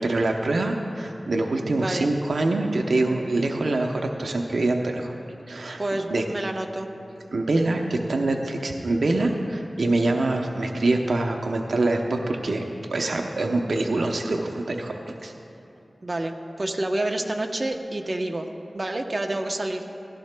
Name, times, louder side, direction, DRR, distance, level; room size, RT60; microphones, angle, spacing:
voice 1, 0.0-5.1 5.5-5.8 6.1-6.2 7.3-12.6 12.9-15.3, right 2 dB, 85° right, 2 dB, 0.7 m, -25 dB
voice 2, 1.8-2.1 5.8-6.9 16.0-18.5 18.7-19.8, right 1 dB, 45° right, 3 dB, 0.8 m, -28 dB
17.5 x 15.0 x 2.2 m, 2.9 s
wide cardioid pair, 55°, 0 cm